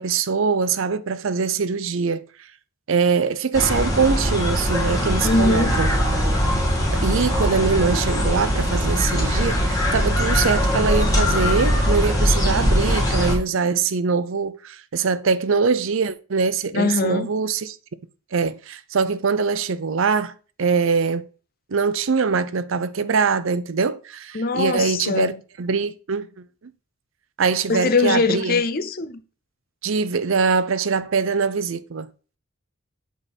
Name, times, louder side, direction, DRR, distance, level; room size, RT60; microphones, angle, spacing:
voice 1, 0.0-2.3 2.9-5.9 6.9-17.8 18.3-21.3 21.7-26.5 27.4-28.6 29.8-32.1, right 5 dB, 70° right, 0.6 m, -23 dB
sound 1, 3.5-13.4, equal, 15° left, 1.8 m, -21 dB
voice 2, 5.2-5.8 16.7-17.3 24.3-25.4 27.7-29.2, left 3 dB, 45° left, 0.6 m, -22 dB
8.1 x 3.8 x 4.1 m
head